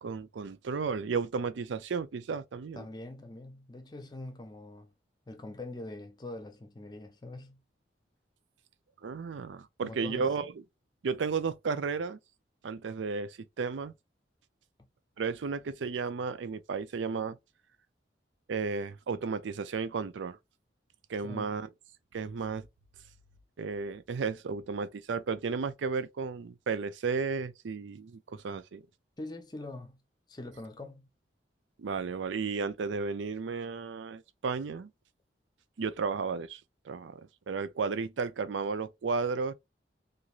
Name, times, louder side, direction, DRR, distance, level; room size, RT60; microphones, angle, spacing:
voice 1, 0.0-2.9 9.0-10.5 11.0-12.2 12.6-13.9 15.2-17.4 18.5-20.4 21.1-21.7 22.1-22.7 23.6-28.8 31.8-34.9 35.8-37.2 37.5-39.5, right 5 dB, 85° right, 0.4 m, -33 dB
voice 2, 2.8-4.9 5.3-7.6 9.8-10.3 21.2-21.6 29.2-30.0 30.3-31.1, left 2 dB, 25° left, 0.6 m, -43 dB
3.0 x 2.6 x 2.4 m
head